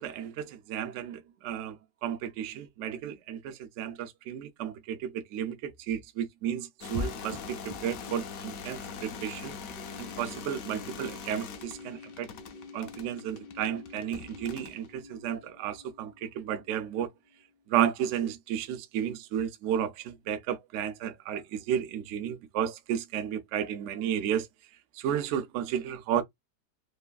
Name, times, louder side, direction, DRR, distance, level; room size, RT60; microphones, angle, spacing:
voice 1, 0.0-1.8 2.0-7.6 7.8-9.6 10.0-12.3 12.7-17.1 17.7-24.5 25.0-26.2, right 9 dB, 90° right, 0.6 m, -33 dB
sound 1, 6.8-14.9, left 6 dB, 70° left, 0.9 m, -43 dB
sound 2, 6.9-17.6, left 2 dB, 45° right, 0.6 m, -45 dB
3.2 x 2.3 x 2.2 m
omnidirectional pair, 1.9 m